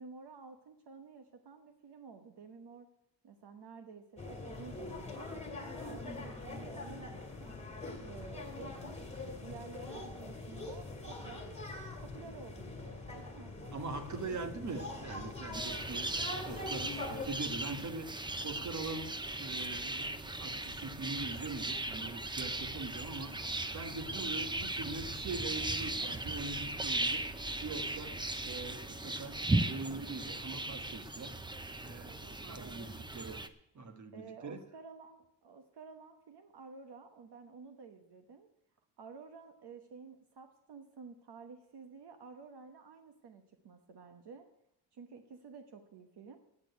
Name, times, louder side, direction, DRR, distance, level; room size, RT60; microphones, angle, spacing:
voice 1, 0.0-2.9 3.2-5.3 5.8-7.6 8.0-11.5 12.0-13.5 32.0-32.9 34.1-38.5 39.0-44.5 44.9-46.4, right 5 dB, 60° right, 7 dB, 1.1 m, -52 dB
sound 1, 4.2-17.3, left 2 dB, 15° left, 2.4 m, -43 dB
voice 2, 13.7-16.1 16.5-18.1 18.4-23.4 23.7-27.2 27.6-31.4 31.8-33.5 33.7-34.6, right 3 dB, 40° right, 7 dB, 1.3 m, -42 dB
sound 2, 15.5-33.5, right 2 dB, 10° right, 0.5 m, -37 dB
8.9 x 8.5 x 9.2 m, 0.83 s
wide cardioid pair, 145°, 46 cm